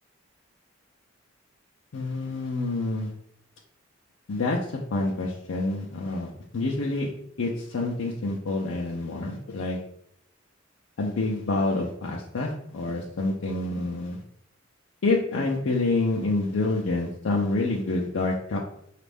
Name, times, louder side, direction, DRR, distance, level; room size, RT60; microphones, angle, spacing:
voice 1, 1.9-3.1 4.3-7.1 7.4-9.8 11.0-14.2 15.0-18.6, left 2 dB, 75° left, -2 dB, 0.5 m, -27 dB
5.1 x 2.4 x 3.4 m, 0.71 s
head